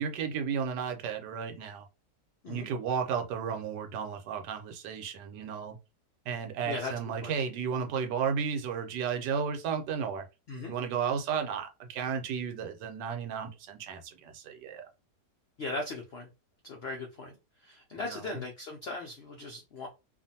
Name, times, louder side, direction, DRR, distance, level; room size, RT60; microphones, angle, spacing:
voice 1, 0.0-1.9 2.5-5.8 6.3-10.3 10.7-14.8 17.9-18.4, right 6 dB, 90° right, 1.3 m, -33 dB
voice 2, 15.6-16.3 16.6-17.4 17.6-19.9, left 2 dB, 80° left, 0.5 m, -38 dB
2.5 x 2.5 x 2.7 m
omnidirectional pair, 1.8 m